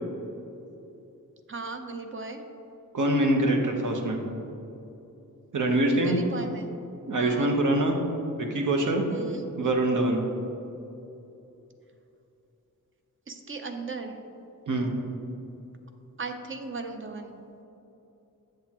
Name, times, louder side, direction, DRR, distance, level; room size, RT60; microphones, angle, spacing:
voice 1, 1.5-2.4 6.0-6.7 7.2-7.5 9.1-9.4 13.3-14.2 16.2-17.4, right 4 dB, 35° right, 5 dB, 0.6 m, -37 dB
voice 2, 2.9-4.2 5.5-6.2 7.1-8.0 8.4-9.0 9.6-10.2 14.7-14.9, right 1 dB, 65° right, 2 dB, 1.0 m, -24 dB
8.0 x 7.6 x 3.0 m, 2.9 s
wide cardioid pair, 125°, 34 cm